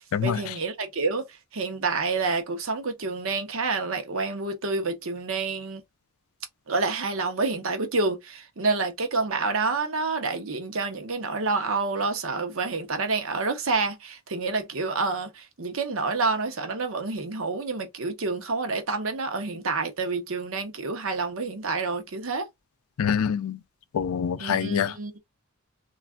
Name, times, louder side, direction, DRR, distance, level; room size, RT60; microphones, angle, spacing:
voice 1, 0.2-1.3 1.5-5.8 6.7-22.5 24.4-25.2, right 3 dB, 65° right, 0.8 m, -28 dB
voice 2, 23.0-23.6 23.9-24.9, left 7 dB, 75° left, 0.4 m, -25 dB
3.3 x 2.4 x 2.3 m
head